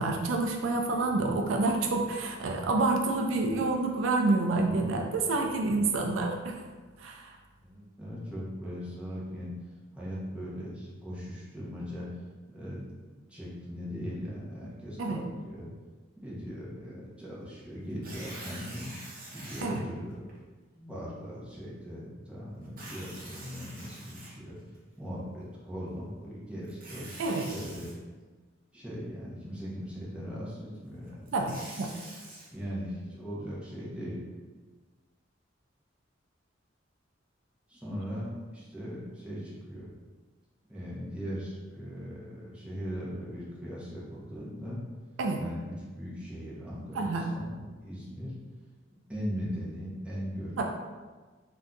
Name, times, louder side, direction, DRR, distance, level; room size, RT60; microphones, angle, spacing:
voice 1, 0.0-6.6 7.0-7.3 15.0-15.2 19.6-19.8 27.2-27.5 31.3-31.9 45.2-45.4 46.9-47.3 50.6-50.7, right 3 dB, 80° right, 2 dB, 0.4 m, -28 dB
voice 2, 7.6-9.5 9.9-12.2 12.5-15.7 16.2-18.9 19.3-20.2 20.8-24.6 25.0-27.2 27.5-27.9 28.7-31.4 32.5-34.2 37.7-39.9 40.7-44.8 45.4-48.4 49.1-50.6, equal, 5° right, -8 dB, 0.7 m, -39 dB
Tearing, 17.9-19.6 20.3-20.4 22.6-24.8 26.6-27.9 31.1-32.5, right 2 dB, 50° right, 0.7 m, -45 dB
2.6 x 2.3 x 3.7 m, 1.3 s
head